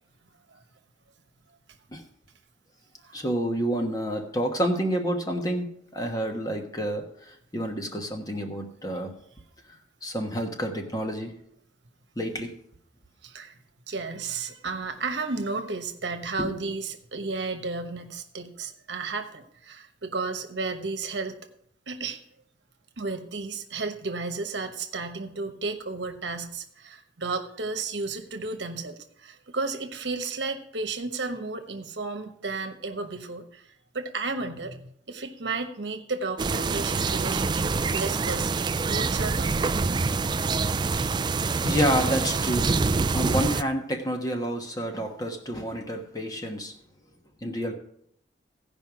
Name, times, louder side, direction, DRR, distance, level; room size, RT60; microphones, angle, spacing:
voice 1, 3.1-9.1 9.7-11.3 12.2-12.5 16.4-16.5 41.6-42.8 43.1-46.7 47.4-47.7, equal, 20° left, 3 dB, 1.3 m, -29 dB
voice 2, 13.2-13.6 13.9-21.3 21.9-22.2 23.0-39.7, right 3 dB, 65° right, 7 dB, 1.1 m, -33 dB
sound 1, 36.4-43.6, right 4 dB, 25° right, 0.3 m, -26 dB
16.0 x 5.3 x 6.1 m, 0.70 s
head